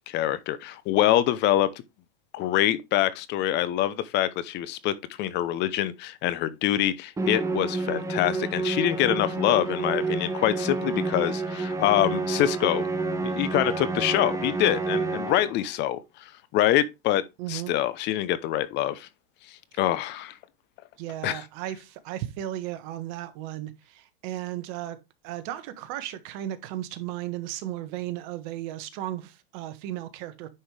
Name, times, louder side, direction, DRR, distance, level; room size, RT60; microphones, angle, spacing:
voice 1, 0.1-1.7 2.3-12.8 13.2-17.2 17.5-19.1 19.5-20.4 21.2-21.4, left 13 dB, 35° left, 0.8 m, -25 dB
Musical instrument, 7.2-15.7, right 3 dB, 10° right, 1.3 m, -29 dB
voice 2, 17.4-17.7 21.0-25.0 25.2-30.5, right 13 dB, 50° right, 1.6 m, -35 dB
9.7 x 5.6 x 3.3 m
hypercardioid pair, 125°, 30 cm